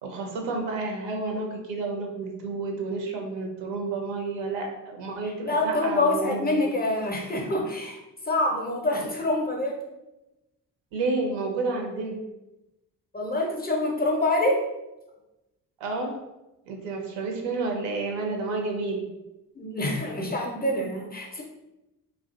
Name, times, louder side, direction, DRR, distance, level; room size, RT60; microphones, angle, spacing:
voice 1, 0.0-6.6 10.9-12.2 15.8-16.2 16.7-19.1, right 3 dB, 60° right, 3 dB, 0.6 m, -30 dB
voice 2, 5.2-8.0 8.3-9.8 13.1-14.7 19.5-21.4, left 2 dB, 20° left, -1 dB, 0.5 m, -26 dB
2.3 x 2.2 x 2.4 m, 0.96 s
hypercardioid pair, 45°, 47 cm